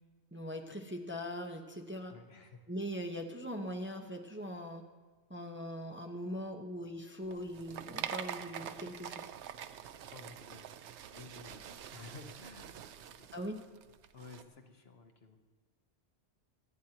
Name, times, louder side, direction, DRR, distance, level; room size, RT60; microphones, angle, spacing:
voice 1, 0.3-2.1 2.7-4.8 5.3-9.3 13.3-13.6, equal, 10° right, 3 dB, 0.8 m, -41 dB
voice 2, 2.1-2.6 10.1-10.7 11.1-13.4 14.1-15.4, left 4 dB, 65° left, 4 dB, 1.3 m, -53 dB
sound 1, 7.3-14.4, right 9 dB, 90° right, 0.9 m, -45 dB
26.0 x 9.3 x 2.9 m, 1.4 s
omnidirectional pair, 1.1 m